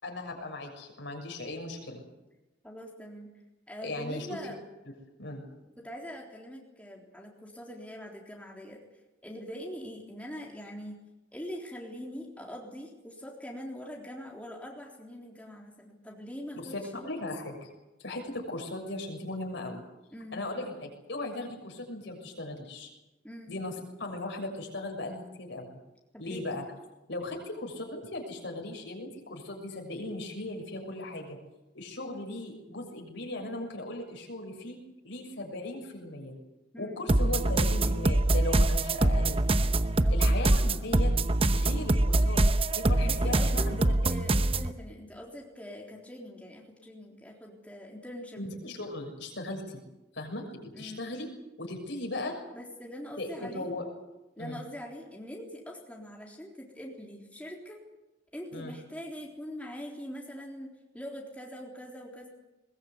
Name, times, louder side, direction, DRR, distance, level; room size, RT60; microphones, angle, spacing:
voice 1, 0.0-2.0 3.8-4.3 5.2-5.4 16.5-17.7 18.0-19.8 20.3-22.9 23.5-23.7 24.0-25.8 26.2-26.6 27.1-31.4 31.7-36.4 36.8-39.4 40.1-41.1 41.5-42.4 42.7-44.0 48.4-49.8 50.1-51.3 51.6-52.4 53.2-53.8 54.4-54.6 58.5-58.7, left 2 dB, 65° left, 3 dB, 6.6 m, -37 dB
voice 2, 2.6-3.3 3.7-4.6 5.8-8.8 9.2-11.0 11.3-17.1 20.1-20.4 23.2-23.5 26.1-26.4 36.7-37.0 40.0-40.3 43.0-43.7 44.0-48.4 50.7-51.1 52.5-53.7 54.4-57.8 58.3-60.7 60.9-62.3, equal, 5° left, -1 dB, 3.7 m, -43 dB
sound 1, 37.1-44.7, right 1 dB, 30° right, 0.9 m, -24 dB
21.5 x 21.0 x 8.4 m, 1.0 s
head